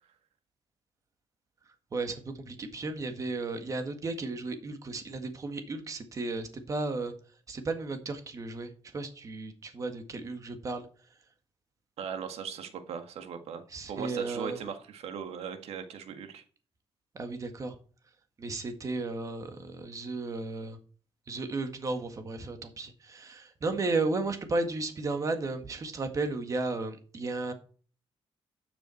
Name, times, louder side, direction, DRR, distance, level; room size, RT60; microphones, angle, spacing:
voice 1, 1.9-7.1 7.5-10.9 13.7-14.6 17.2-17.8 18.4-20.8 21.3-27.5, right 3 dB, 30° right, 7 dB, 1.8 m, -34 dB
voice 2, 12.0-16.4, right 7 dB, 90° right, 7 dB, 1.9 m, -39 dB
12.5 x 7.0 x 4.4 m, 0.40 s
wide cardioid pair, 170°, 10 cm